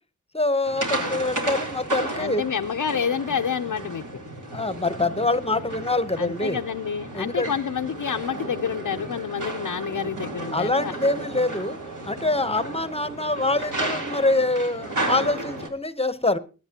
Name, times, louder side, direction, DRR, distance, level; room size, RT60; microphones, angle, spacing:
voice 1, 0.3-2.4 4.5-6.6 7.1-7.5 10.5-11.8 12.0-16.4, left 2 dB, 20° left, 13 dB, 0.9 m, -25 dB
sound 1, 0.6-15.7, right 2 dB, 70° right, 3.5 m, -33 dB
voice 2, 2.2-4.2 6.2-10.9, left 7 dB, 85° left, 4 dB, 0.7 m, -28 dB
20.5 x 11.0 x 2.9 m, 0.33 s
wide cardioid pair, 90°, 32 cm